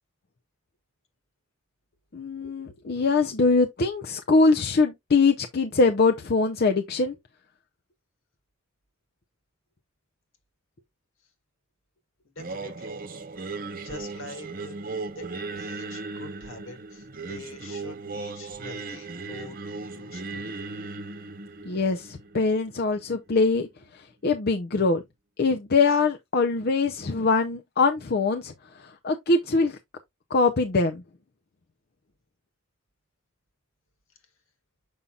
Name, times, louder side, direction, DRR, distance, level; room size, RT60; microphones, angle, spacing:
voice 1, 2.1-7.1 21.6-25.0 25.4-29.8 30.3-31.0, left 3 dB, 50° left, 0.6 m, -23 dB
voice 2, 12.3-13.0 13.8-15.3 15.6-20.5 25.9-26.0, left 2 dB, 70° left, 1.8 m, -45 dB
Singing, 12.4-23.5, right 3 dB, 45° right, 0.9 m, -37 dB
7.0 x 5.6 x 2.4 m
head